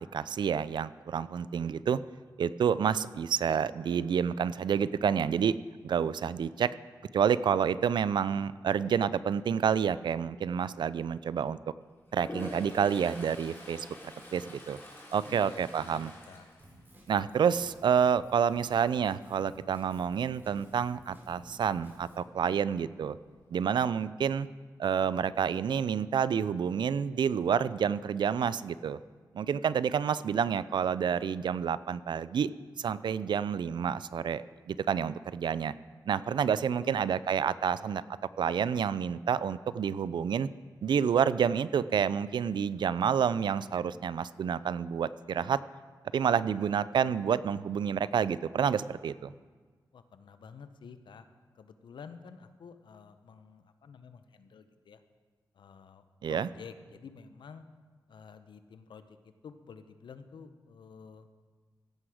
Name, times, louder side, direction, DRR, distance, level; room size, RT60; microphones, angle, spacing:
voice 1, 0.0-2.0 2.4-5.6 5.8-6.7 7.1-11.6 12.1-14.8 15.1-16.1 17.1-23.2 23.5-24.5 24.8-29.0 29.3-32.5 32.8-35.7 36.1-38.0 38.4-40.5 40.8-45.6 46.1-49.3 56.2-56.5, right 7 dB, 70° right, 17 dB, 0.4 m, -29 dB
Toilet flush, 12.1-17.3 17.7-18.1 22.5-22.6 22.9-23.6, left 1 dB, 30° left, 3.5 m, -46 dB
voice 2, 15.2-16.5 36.8-37.1 49.9-51.3 51.5-55.0 55.5-57.6 58.1-61.3, left 6 dB, 80° left, 10 dB, 0.8 m, -50 dB
Drum kit, 16.6-22.2, right 1 dB, 25° right, 3.2 m, -55 dB
16.0 x 7.7 x 4.9 m, 1.5 s
cardioid pair, 70°, 8 cm